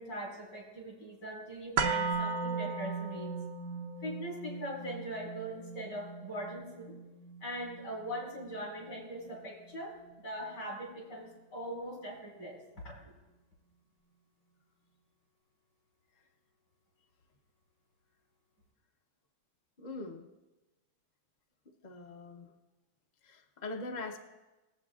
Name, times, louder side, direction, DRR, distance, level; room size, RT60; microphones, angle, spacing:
voice 1, 0.0-3.3 4.0-6.9 7.4-13.1, equal, 70° left, -2 dB, 4.0 m, -41 dB
sound 1, 1.8-9.8 10.2-10.3, right 5 dB, 75° right, 1.3 m, -37 dB
voice 2, 19.8-20.3 21.8-22.5 23.2-24.2, left 2 dB, 35° left, 2 dB, 0.8 m, -42 dB
20.0 x 8.0 x 2.4 m, 1.1 s
omnidirectional pair, 1.9 m